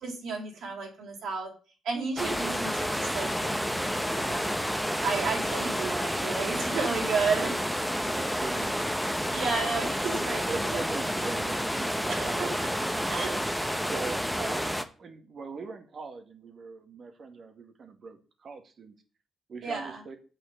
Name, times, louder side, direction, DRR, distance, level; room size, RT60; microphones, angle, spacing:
voice 1, 0.0-1.5 1.8-4.7 5.0-7.5 9.3-10.6 12.1-13.4 19.6-20.0, right 4 dB, 70° right, -1 dB, 3.9 m, -32 dB
sound 1, 2.2-14.8, equal, ahead, 1.0 m, -30 dB
voice 2, 8.0-8.8 10.5-12.6 13.8-19.0 19.5-20.2, right 4 dB, 50° right, 6 dB, 2.1 m, -41 dB
7.5 x 6.7 x 6.8 m, 0.36 s
cardioid pair, 90°, 0 cm